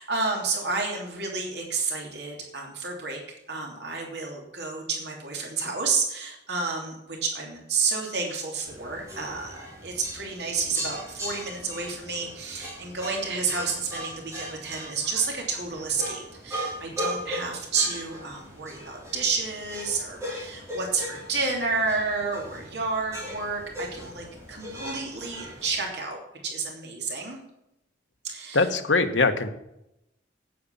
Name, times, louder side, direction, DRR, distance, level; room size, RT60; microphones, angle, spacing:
voice 1, 0.0-3.2 3.5-27.4 28.2-28.7, right 4 dB, 60° right, 0 dB, 3.1 m, -30 dB
sound 1, 8.6-25.8, equal, 15° right, 4.9 m, -39 dB
voice 2, 28.5-29.5, left 3 dB, 85° left, 7 dB, 1.3 m, -22 dB
9.5 x 9.4 x 7.2 m, 0.84 s
head